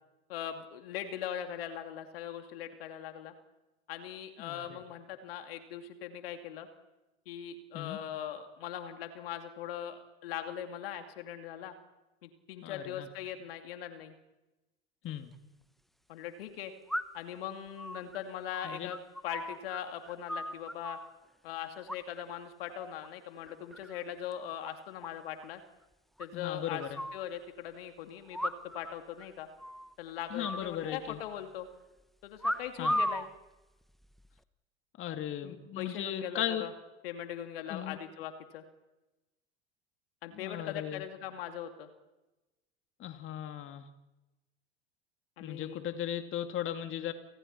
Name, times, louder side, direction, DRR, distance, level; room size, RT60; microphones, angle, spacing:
voice 1, 0.3-3.3 3.9-6.7 7.3-11.7 12.2-14.1 16.1-16.7 17.1-19.0 19.2-21.0 21.4-25.6 26.2-26.8 27.1-29.5 30.0-31.7 32.2-33.3 35.4-36.7 37.0-38.6 40.2-41.9 45.4-45.8, left 10 dB, 70° left, 6 dB, 2.6 m, -40 dB
voice 2, 4.4-4.8 7.7-8.0 12.6-13.1 15.0-15.3 18.6-18.9 26.3-27.0 30.3-31.2 32.8-33.0 35.0-36.7 37.7-38.0 40.3-41.0 43.0-43.9 45.4-47.1, left 10 dB, 40° left, 6 dB, 2.5 m, -37 dB
sound 1, 15.1-15.2 16.9-17.3 17.8-19.8 20.0-21.1 21.9-22.4 22.7-23.1 23.5-24.0 24.3-24.4 24.6-24.7 25.0-25.1 25.4-25.5 26.2-27.2 28.3-28.9 29.2-29.3 29.6-29.9 30.4-31.3 32.4-33.3 34.0-34.4, equal, ahead, 1.1 m, -36 dB
29.5 x 29.0 x 4.4 m, 1.0 s
figure-of-eight pair, 75°, 31 cm